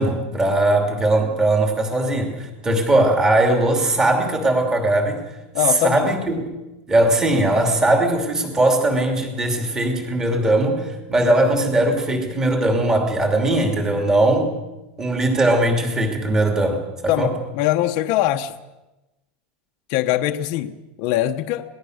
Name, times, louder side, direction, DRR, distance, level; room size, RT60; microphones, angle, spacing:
voice 1, 0.0-5.3 5.7-6.4 6.9-14.6 15.0-17.3, right 1 dB, 10° right, 3 dB, 2.7 m, -19 dB
voice 2, 5.5-6.1 17.1-18.5 19.9-21.8, left 13 dB, 45° left, 5 dB, 1.1 m, -22 dB
26.0 x 19.0 x 6.6 m, 1.0 s
supercardioid pair, 170°, 5 cm